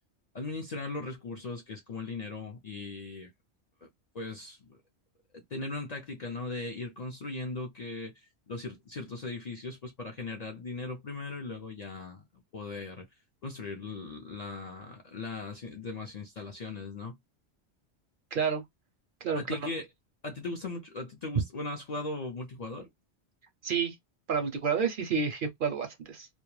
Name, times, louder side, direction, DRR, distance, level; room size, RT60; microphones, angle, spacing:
voice 1, 0.3-3.3 3.8-3.9 4.1-4.8 5.3-13.1 13.4-17.2 19.3-19.9 20.2-22.9, left 3 dB, 50° left, 0.5 m, -38 dB
voice 2, 18.3-18.6 19.2-19.6 23.6-24.0 24.3-26.3, right 6 dB, 60° right, 0.6 m, -30 dB
2.2 x 2.1 x 3.0 m
omnidirectional pair, 1.2 m